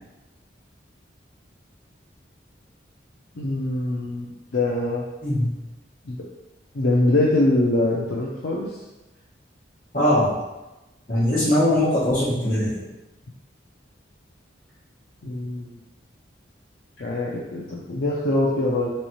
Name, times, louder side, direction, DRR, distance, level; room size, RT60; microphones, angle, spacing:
voice 1, 3.4-5.0 6.1-6.2 6.7-8.7 15.2-15.7 17.0-18.9, left 2 dB, 65° left, -4 dB, 0.5 m, -23 dB
voice 2, 9.9-10.3 11.1-12.8, left 1 dB, 45° left, -8 dB, 1.5 m, -20 dB
4.2 x 3.1 x 3.0 m, 1.0 s
head